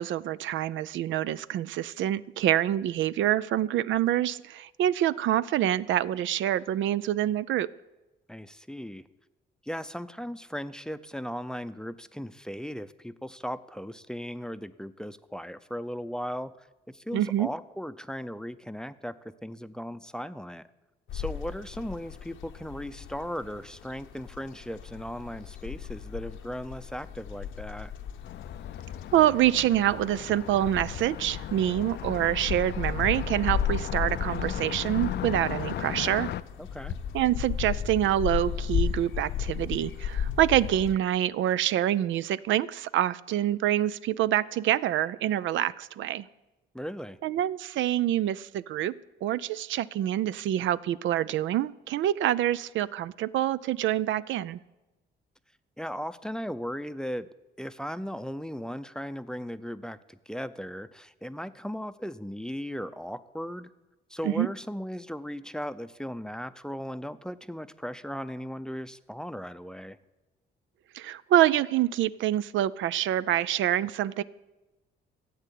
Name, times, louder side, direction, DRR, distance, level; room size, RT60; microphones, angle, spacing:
voice 1, 0.0-7.7 17.1-17.5 29.1-36.3 37.1-46.3 47.2-48.9 49.2-54.6 64.2-64.5 70.9-74.2, right 12 dB, 75° right, 17 dB, 0.5 m, -26 dB
voice 2, 8.3-9.0 9.6-20.6 21.1-27.9 36.6-36.9 46.7-47.2 55.8-57.3 57.6-63.7 64.1-70.0, equal, 5° left, 12 dB, 0.6 m, -37 dB
sound 1, 21.1-40.9, left 8 dB, 80° left, 1.0 m, -35 dB
Car passing by, 28.2-36.4, left 11 dB, 60° left, 0.5 m, -37 dB
13.5 x 7.9 x 8.4 m, 1.1 s
cardioid pair, 90°, 20 cm